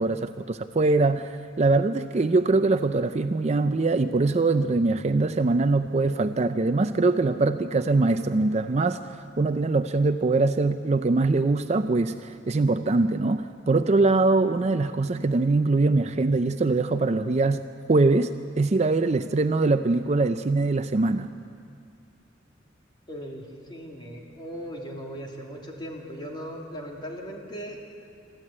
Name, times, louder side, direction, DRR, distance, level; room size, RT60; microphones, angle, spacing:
voice 1, 0.0-17.6 17.9-21.3, right 3 dB, 35° right, 10 dB, 0.5 m, -23 dB
voice 2, 23.1-27.8, equal, 25° left, -1 dB, 2.8 m, -38 dB
23.5 x 14.0 x 8.7 m, 2.4 s
head